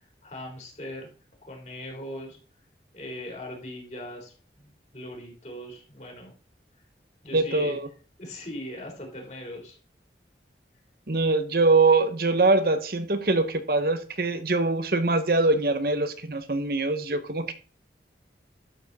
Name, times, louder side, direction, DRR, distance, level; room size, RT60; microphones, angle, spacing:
voice 1, 0.2-1.1 1.4-2.4 2.9-6.3 7.2-7.8 8.2-9.8, left 1 dB, 40° left, 0 dB, 3.8 m, -39 dB
voice 2, 7.3-7.9 11.1-17.5, right 3 dB, 55° right, 10 dB, 1.0 m, -23 dB
12.0 x 7.2 x 4.1 m, 0.37 s
head